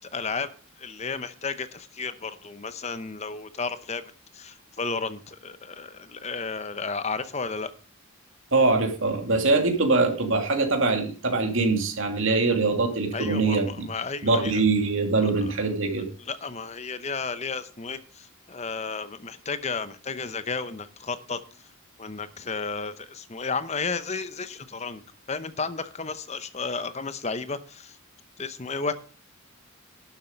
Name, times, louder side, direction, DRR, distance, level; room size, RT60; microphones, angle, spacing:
voice 1, 0.1-0.5 0.8-4.0 4.3-7.7 13.1-14.5 15.2-15.3 16.2-21.4 22.0-25.0 25.3-28.0 28.4-28.9, left 4 dB, 30° left, 13 dB, 0.8 m, -33 dB
voice 2, 8.5-13.9 14.2-16.1, right 3 dB, 65° right, 4 dB, 2.5 m, -23 dB
12.0 x 7.3 x 5.2 m, 0.39 s
head